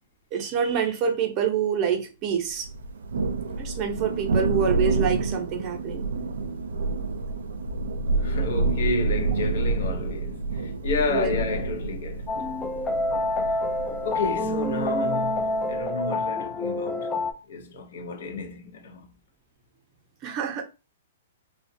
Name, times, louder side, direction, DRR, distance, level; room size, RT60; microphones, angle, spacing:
voice 1, 0.3-2.7 3.6-6.1 11.1-11.3 20.2-20.6, right 7 dB, 35° right, 0.6 m, -26 dB
Thunder, 2.6-15.8, right 3 dB, 85° right, 0.4 m, -28 dB
voice 2, 8.2-12.3 14.0-17.1 17.5-19.1, left 4 dB, 70° left, 0.6 m, -31 dB
sound 1, 12.3-17.3, left 1 dB, 10° left, 0.4 m, -27 dB
2.3 x 2.1 x 2.6 m
hypercardioid pair, 140°, 0 cm